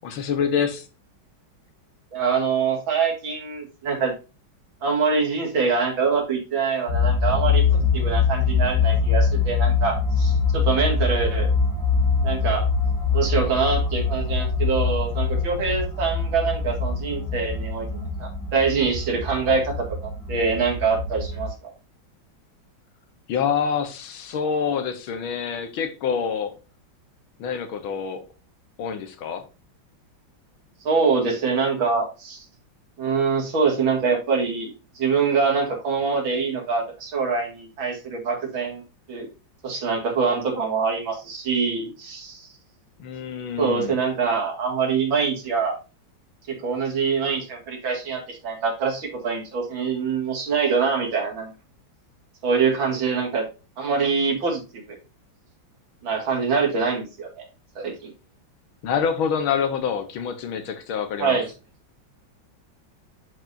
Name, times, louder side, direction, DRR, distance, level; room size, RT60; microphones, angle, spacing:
voice 1, 0.0-0.9 23.3-26.6 27.4-28.3 28.8-29.5 43.0-44.0 58.8-61.4, left 7 dB, 85° left, 1.9 m, -26 dB
voice 2, 2.1-4.1 4.8-11.5 12.2-12.7 13.1-19.7 20.3-21.7 30.8-32.4 33.0-38.8 39.1-39.3 39.6-42.5 43.6-45.8 46.5-51.5 52.4-53.4 53.8-55.0 56.0-57.5 57.8-58.1 61.2-61.5, right 5 dB, 75° right, 2.9 m, -24 dB
sound 1, 6.9-21.5, left 5 dB, 65° left, 2.5 m, -23 dB
10.5 x 4.8 x 2.6 m
omnidirectional pair, 2.2 m